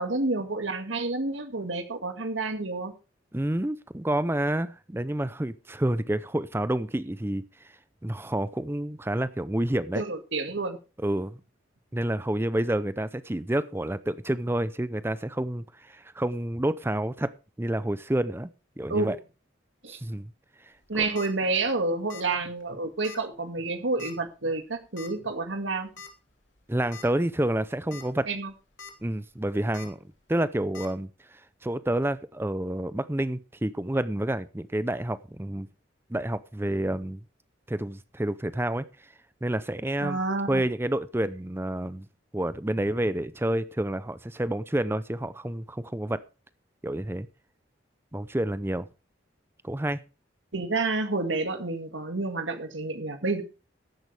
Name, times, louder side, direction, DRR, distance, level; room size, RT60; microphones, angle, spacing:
voice 1, 0.0-2.9 9.9-10.8 18.9-19.1 19.8-20.0 20.9-25.9 28.3-28.5 40.0-40.6 50.5-53.4, right 3 dB, 80° right, 2.1 m, -29 dB
voice 2, 3.3-7.4 8.0-10.0 11.0-11.4 11.9-17.3 17.6-18.5 18.8-19.2 19.9-20.3 21.0-21.1 26.7-28.3 29.0-30.0 30.3-35.7 36.1-37.2 37.7-38.9 39.4-40.2 40.5-42.1 42.3-46.2 46.8-47.3 48.1-48.9 49.6-50.0, right 1 dB, 10° right, 0.6 m, -29 dB
sound 1, 20.8-21.3 22.1-22.4 22.6-22.7 23.0-23.2 24.0-24.3 25.0-25.1 26.0-26.1 26.6-26.7 26.9-27.0 27.7-28.0 28.5-28.9 29.7-29.9 30.7-30.9, left 5 dB, 75° left, 2.9 m, -43 dB
14.5 x 11.0 x 3.4 m
head